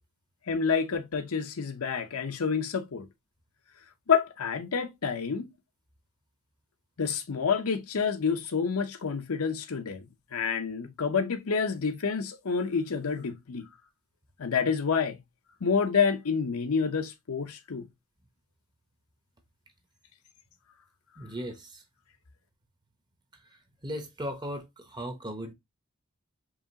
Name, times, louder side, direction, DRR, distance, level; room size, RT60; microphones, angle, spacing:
voice 1, 0.5-3.1 4.1-5.5 7.0-13.7 14.4-15.2 15.6-17.9, left 6 dB, 75° left, 0.7 m, -28 dB
voice 2, 21.2-21.8 23.8-25.5, equal, 20° right, 0.8 m, -37 dB
4.9 x 2.9 x 2.8 m
head